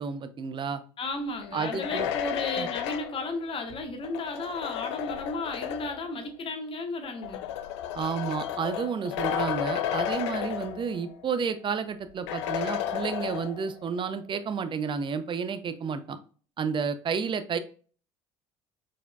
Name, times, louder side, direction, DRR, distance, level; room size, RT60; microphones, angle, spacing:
voice 1, 0.0-0.8 1.5-2.1 2.6-2.7 7.9-16.2 16.6-17.6, right 6 dB, 30° right, 12 dB, 0.6 m, -31 dB
voice 2, 1.0-7.4, left 2 dB, 35° left, 5 dB, 1.2 m, -34 dB
sound 1, 1.4-6.1 7.0-11.2 11.5-11.6 12.3-13.8, left 10 dB, 70° left, 0.4 m, -33 dB
4.5 x 4.2 x 2.3 m, 0.40 s
figure-of-eight pair, 60°, 16 cm